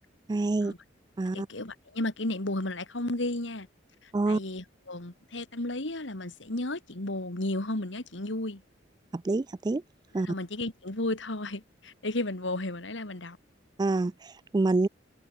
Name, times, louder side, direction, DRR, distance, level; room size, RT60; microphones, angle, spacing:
voice 1, 0.3-0.7 1.2-1.5 4.1-4.4 9.1-9.8 10.1-10.3 13.8-14.9, right 2 dB, 20° right, 0.3 m, -27 dB
voice 2, 1.3-3.7 4.0-8.6 10.2-13.4, left 1 dB, 70° left, 2.6 m, -33 dB
head